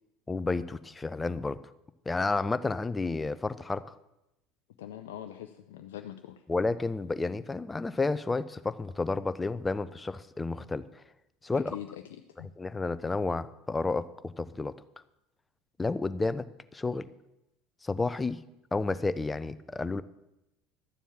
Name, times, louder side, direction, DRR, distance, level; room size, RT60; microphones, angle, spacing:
voice 1, 0.3-1.6 2.1-4.0 6.5-10.9 11.4-11.8 12.6-14.8 15.8-16.5 16.7-17.0 17.8-18.4 18.7-20.0, left 3 dB, 15° left, 14 dB, 0.7 m, -31 dB
voice 2, 4.8-6.4 11.5-12.5, left 11 dB, 75° left, 7 dB, 0.6 m, -43 dB
12.5 x 7.2 x 7.3 m, 0.90 s
hypercardioid pair, 75°, 0 cm